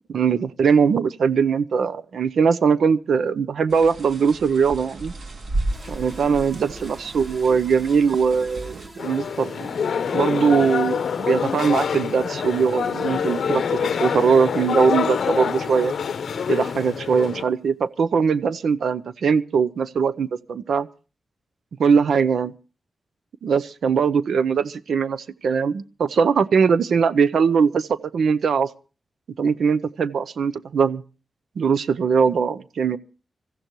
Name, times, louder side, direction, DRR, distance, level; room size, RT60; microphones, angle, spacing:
voice 1, 0.1-5.1 5.9-9.7 10.1-15.9 16.5-20.9 21.8-22.5 23.4-28.7 29.4-31.0 31.6-33.0, right 6 dB, 85° right, 0.7 m, -21 dB
sound 1, 3.7-8.9, right 2 dB, 65° right, 3.3 m, -33 dB
sound 2, 5.7-17.6, right 1 dB, 15° right, 2.3 m, -44 dB
sound 3, 9.0-17.4, left 7 dB, 85° left, 0.7 m, -25 dB
25.5 x 14.5 x 3.0 m
wide cardioid pair, 170°, 0 cm